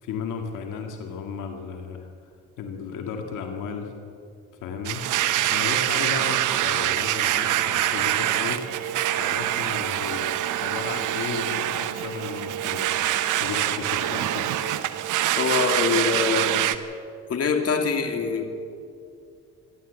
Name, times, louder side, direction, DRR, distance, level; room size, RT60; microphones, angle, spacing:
voice 1, 0.0-2.1 2.6-3.9 4.6-5.1 5.5-8.7 9.2-13.0 13.4-14.5, left 5 dB, 90° left, 4 dB, 2.1 m, -34 dB
Domestic sounds home sounds, 4.9-16.8, right 13 dB, 90° right, 1.0 m, -25 dB
voice 2, 15.4-16.7 17.3-18.6, left 5 dB, 55° left, 5 dB, 2.7 m, -24 dB
27.0 x 12.0 x 8.3 m, 2.4 s
cardioid pair, 90°, 30 cm